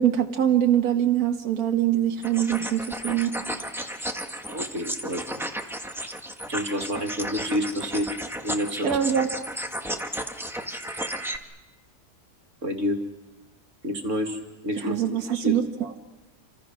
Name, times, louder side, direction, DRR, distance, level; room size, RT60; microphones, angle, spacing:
voice 1, 0.0-3.3 8.8-9.3 14.8-16.0, right 10 dB, 70° right, 3 dB, 1.7 m, -23 dB
sound 1, 2.2-11.4, equal, ahead, 1.3 m, -33 dB
voice 2, 4.5-5.2 5.9-6.1 6.5-8.1 8.4-8.9 12.6-13.0 13.8-15.0 15.3-15.6, equal, 50° right, 3 dB, 2.7 m, -29 dB
29.0 x 26.5 x 6.2 m, 1.1 s
omnidirectional pair, 1.7 m